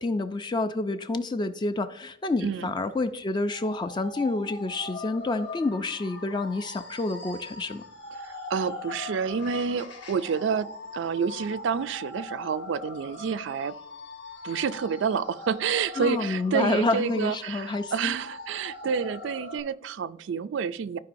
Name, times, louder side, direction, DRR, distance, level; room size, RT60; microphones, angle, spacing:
voice 1, 0.0-7.8 16.0-18.2, left 2 dB, 25° left, 0.3 m, -28 dB
voice 2, 2.4-2.7 8.2-13.8 14.4-21.0, right 6 dB, 65° right, 0.3 m, -29 dB
sound 1, 3.5-19.6, left 2 dB, 60° left, 1.2 m, -41 dB
13.5 x 4.8 x 2.6 m
head